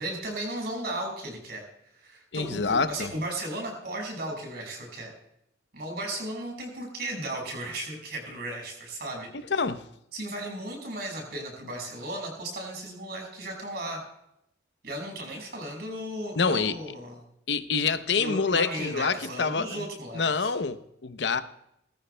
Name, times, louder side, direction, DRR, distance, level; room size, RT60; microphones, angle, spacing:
voice 1, 0.0-1.7 2.0-5.1 5.7-9.3 10.1-14.0 14.8-17.2 18.1-20.5, right 1 dB, 60° right, 1 dB, 5.4 m, -35 dB
voice 2, 2.3-3.1 9.5-9.8 16.4-16.8 17.5-19.8 20.1-21.4, left 5 dB, 65° left, 11 dB, 0.7 m, -26 dB
20.0 x 14.0 x 2.2 m, 0.77 s
head